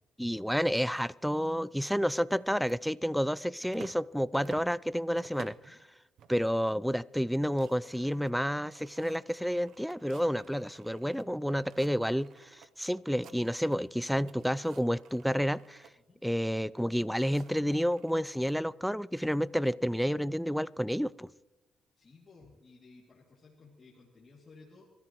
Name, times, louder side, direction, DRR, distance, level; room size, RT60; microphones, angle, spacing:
voice 1, 0.2-5.8 6.3-15.8 16.2-21.3, equal, ahead, 18 dB, 0.4 m, -30 dB
sound 1, 2.4-4.1 4.3-5.7 6.2-6.6 6.9-7.0 7.3-11.3 11.6-12.7 13.0-13.9 14.2-15.9 16.7-18.6, right 8 dB, 70° right, 0.7 m, -55 dB
voice 2, 22.0-24.8, left 3 dB, 30° left, -4 dB, 2.5 m, -57 dB
25.5 x 13.5 x 3.1 m, 1.0 s
cardioid pair, 90°, 0 cm